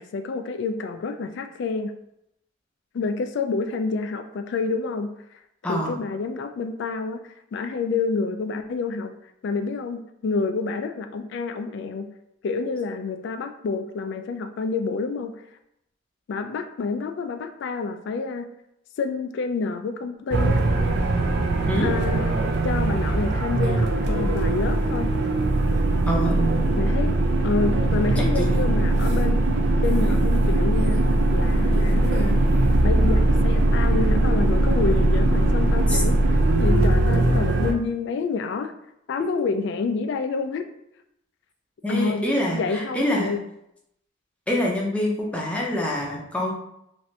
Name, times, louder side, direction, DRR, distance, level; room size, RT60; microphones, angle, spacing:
voice 1, 0.0-1.9 2.9-5.1 5.7-9.1 9.4-12.1 12.4-15.4 16.3-18.5 19.0-20.6 21.8-22.4 22.6-25.1 26.8-27.2 27.4-29.4 29.8-31.0 31.3-32.5 32.8-38.7 39.1-40.7 41.9-42.2 42.5-43.4, left 4 dB, 60° left, 8 dB, 0.3 m, -28 dB
voice 2, 5.6-6.0 21.7-21.9 26.1-26.4 28.2-28.6 35.9-36.0 41.8-43.4 44.5-46.5, left 1 dB, 5° left, -3 dB, 0.5 m, -26 dB
sound 1, 20.3-37.7, right 2 dB, 55° right, 0.4 m, -20 dB
3.1 x 2.5 x 2.7 m, 0.79 s
head